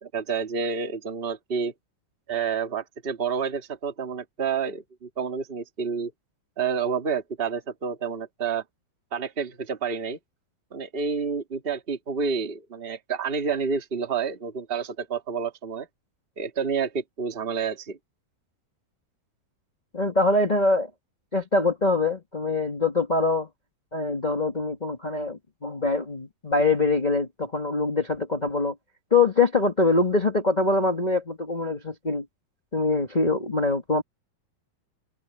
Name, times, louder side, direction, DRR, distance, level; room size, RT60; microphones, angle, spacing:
voice 1, 0.0-1.7 2.3-6.1 6.6-8.6 9.1-10.2 10.7-15.9 16.4-18.0, right 6 dB, 25° right, 1.2 m, -29 dB
voice 2, 19.9-20.9 21.3-23.5 23.9-28.7 29.1-32.2 32.7-34.0, left 3 dB, 25° left, 0.9 m, -24 dB
omnidirectional pair, 4.4 m